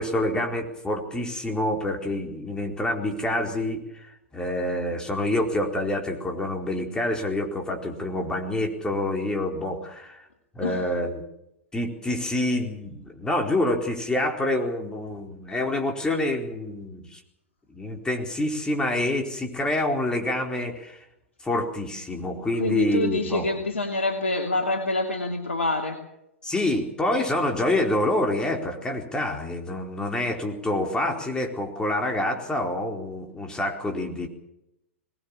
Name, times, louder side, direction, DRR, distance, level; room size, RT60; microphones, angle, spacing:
voice 1, 0.0-10.2 10.5-11.2 11.7-17.2 17.7-21.0 21.4-23.5 26.4-34.3, left 1 dB, 10° left, 2 dB, 4.3 m, -27 dB
voice 2, 22.6-26.0, left 2 dB, 80° left, 2 dB, 2.6 m, -26 dB
22.5 x 19.0 x 7.2 m, 0.83 s
figure-of-eight pair, 100°, 7 cm